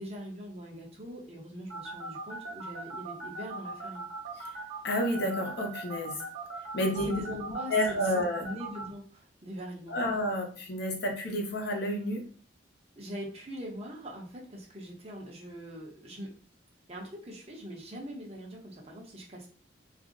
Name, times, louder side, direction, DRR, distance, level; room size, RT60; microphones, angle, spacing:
voice 1, 0.0-4.1 7.0-10.2 13.0-16.3 16.9-19.5, equal, 35° right, -2 dB, 0.8 m, -42 dB
sound 1, 1.7-8.8, right 2 dB, 85° right, 0.8 m, -39 dB
voice 2, 4.8-6.2 6.7-7.2 7.7-8.4 9.9-12.2, left 1 dB, 60° left, 2 dB, 0.7 m, -30 dB
2.5 x 2.1 x 3.7 m, 0.41 s
head